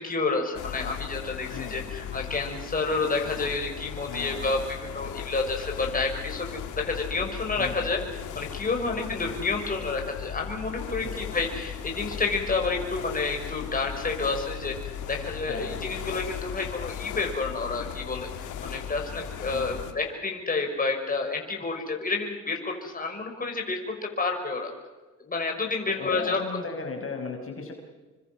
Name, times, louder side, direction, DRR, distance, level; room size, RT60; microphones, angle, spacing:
voice 1, 0.0-8.0 8.4-14.7 15.0-24.7 25.2-26.4, left 3 dB, 30° left, 2 dB, 5.8 m, -29 dB
sound 1, 0.5-19.9, left 9 dB, 80° left, 2.7 m, -37 dB
voice 2, 1.5-2.0 4.1-4.5 7.6-7.9 8.8-9.3 11.0-11.1 15.5-15.8 19.5-19.8 26.0-27.7, left 4 dB, 45° left, 3 dB, 5.4 m, -37 dB
29.0 x 24.5 x 6.1 m, 1.3 s
cardioid pair, 90°, 30 cm